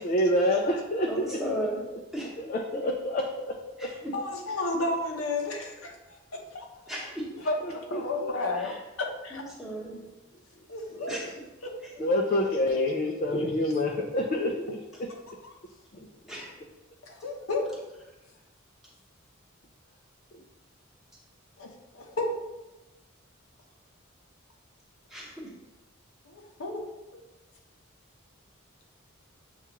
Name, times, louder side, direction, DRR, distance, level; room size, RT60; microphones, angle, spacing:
voice 1, 0.0-1.2 2.4-3.6 7.6-8.3 10.9-11.3 12.0-14.8 15.9-16.1 20.4-20.5, left 1 dB, 40° left, 1 dB, 0.3 m, -27 dB
voice 2, 1.1-1.8 2.1-2.4 3.8-4.1 6.9-7.3 8.5-8.8 9.3-10.0 11.1-11.3 11.8-11.9 16.3-16.5 25.1-25.5, equal, ahead, -6 dB, 1.0 m, -35 dB
voice 3, 4.1-6.2 6.5-6.7 7.4-8.7 9.2-9.4 10.7-11.1 11.6-11.7 17.1-17.6 21.6-22.3 26.3-26.8, left 2 dB, 80° left, 2 dB, 0.7 m, -32 dB
7.1 x 2.4 x 2.8 m, 1.0 s
head